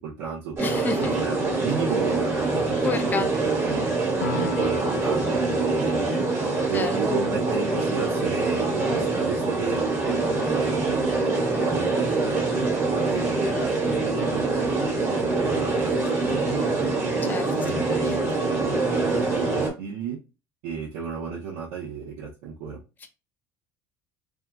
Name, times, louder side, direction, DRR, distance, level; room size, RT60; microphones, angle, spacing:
voice 1, 0.0-0.7 1.0-3.9 4.4-6.0 6.7-11.2 11.6-17.1 17.6-20.2 20.6-22.8, right 5 dB, 80° right, -3 dB, 0.6 m, -34 dB
voice 2, 0.6-1.1 2.8-3.5 6.7-6.9 17.2-18.4 23.0-23.1, left 4 dB, 20° left, 5 dB, 0.4 m, -31 dB
sound 1, 0.6-19.7, right 3 dB, 30° right, 1.2 m, -24 dB
Piano, 4.2-11.6, left 4 dB, 80° left, 0.6 m, -41 dB
2.7 x 2.3 x 2.2 m, 0.29 s
supercardioid pair, 90°, 9 cm